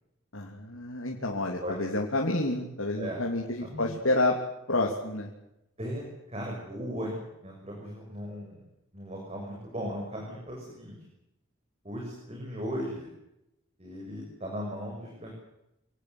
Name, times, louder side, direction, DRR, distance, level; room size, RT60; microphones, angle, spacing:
voice 1, 0.3-4.4 4.7-5.3, left 2 dB, 70° left, 0 dB, 3.3 m, -29 dB
voice 2, 2.9-4.1 5.8-6.0 6.3-8.6 8.9-11.0 11.8-13.1 13.8-15.3, equal, 30° right, -1 dB, 6.3 m, -37 dB
26.5 x 19.5 x 8.1 m, 0.86 s
head